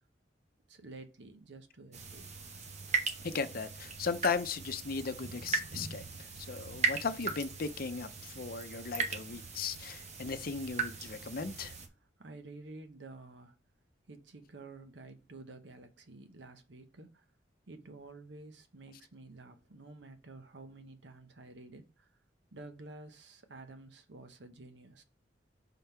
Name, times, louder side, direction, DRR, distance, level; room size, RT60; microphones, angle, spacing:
voice 1, 0.7-2.2 3.4-3.5 12.2-13.6 14.1-17.2 17.7-22.1 22.5-25.0, right 2 dB, 75° right, 0.9 m, -51 dB
sound 1, 1.9-11.9, right 5 dB, 40° right, 0.9 m, -38 dB
voice 2, 3.2-11.7, left 5 dB, 55° left, 0.6 m, -37 dB
5.5 x 3.7 x 4.5 m
head